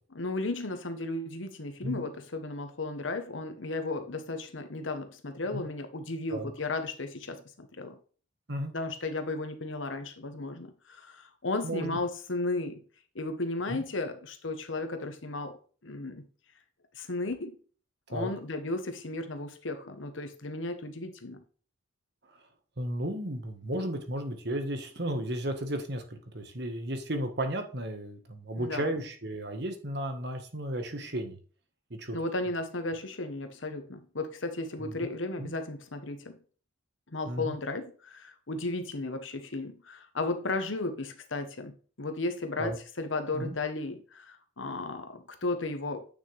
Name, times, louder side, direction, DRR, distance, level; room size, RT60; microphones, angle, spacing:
voice 1, 0.1-8.0 8.7-12.8 13.1-16.3 16.9-17.6 18.1-21.4 28.6-28.9 32.1-36.4 37.1-46.0, left 2 dB, 80° left, 1.2 m, -34 dB
voice 2, 11.6-12.0 13.7-13.8 18.1-18.3 22.8-31.4 31.9-32.2 34.8-35.1 35.4-35.5 37.3-37.5 42.6-42.8 43.3-43.6, right 1 dB, 55° right, 1.6 m, -34 dB
9.3 x 6.3 x 3.5 m
head